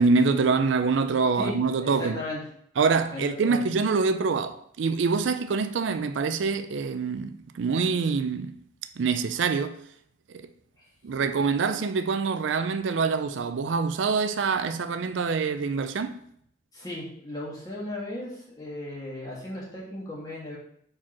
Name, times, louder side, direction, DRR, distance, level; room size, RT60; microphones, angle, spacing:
voice 1, 0.0-2.2 2.8-8.6 9.0-9.8 11.0-16.2, right 4 dB, 70° right, 0.4 m, -25 dB
voice 2, 1.8-2.4 3.1-3.6 16.7-20.6, left 1 dB, 20° left, 2.1 m, -36 dB
4.8 x 4.4 x 5.9 m
head